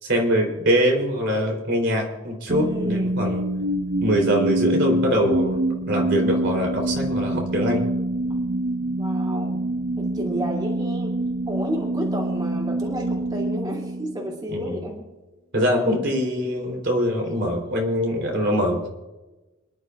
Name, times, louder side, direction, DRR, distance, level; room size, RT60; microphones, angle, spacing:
voice 1, 0.0-3.4 4.0-5.6 5.9-7.8 14.5-14.9 15.5-18.9, equal, 65° right, 1 dB, 3.8 m, -23 dB
voice 2, 2.5-3.1 9.0-9.6 10.0-11.1 11.5-15.0, equal, 25° right, -2 dB, 2.8 m, -31 dB
sound 1, 2.5-14.7, right 1 dB, 80° right, 1.0 m, -26 dB
28.5 x 11.0 x 2.5 m, 1.1 s
head